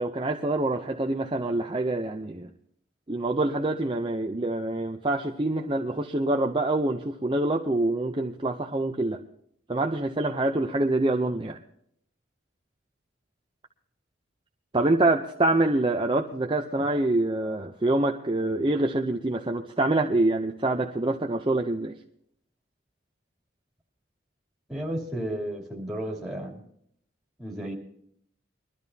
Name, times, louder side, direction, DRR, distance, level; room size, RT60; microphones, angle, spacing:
voice 1, 0.0-2.5 3.1-9.2 9.7-11.6 14.7-21.9, right 2 dB, 25° right, 3 dB, 0.6 m, -26 dB
voice 2, 24.7-26.6 27.4-27.7, right 1 dB, ahead, -2 dB, 2.9 m, -33 dB
22.5 x 12.5 x 2.8 m, 0.71 s
head